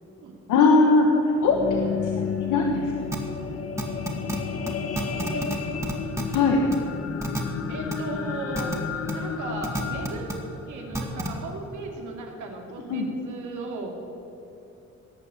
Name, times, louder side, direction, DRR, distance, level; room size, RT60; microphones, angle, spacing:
voice 1, 0.5-1.5 2.0-2.1 2.4-2.9 6.3-6.6 12.9-13.1, left 3 dB, 85° left, 1 dB, 1.4 m, -19 dB
sound 1, 1.2-11.7 12.3-12.4, left 6 dB, 55° left, 1.3 m, -32 dB
sound 2, 3.1-3.2 3.8-4.4 4.7-4.8 5.0-5.6 5.8-6.4 6.7-6.8 7.2-7.4 7.9-8.0 8.5-8.8 9.1-9.2 9.6-10.3 10.9-11.3, right 1 dB, 10° right, 2.3 m, -28 dB
voice 2, 5.2-5.9 7.7-8.7 9.1-10.4 10.7-14.0, right 3 dB, 75° right, 1 dB, 2.8 m, -36 dB
18.0 x 6.7 x 8.6 m, 2.9 s
cardioid pair, 90°, 30 cm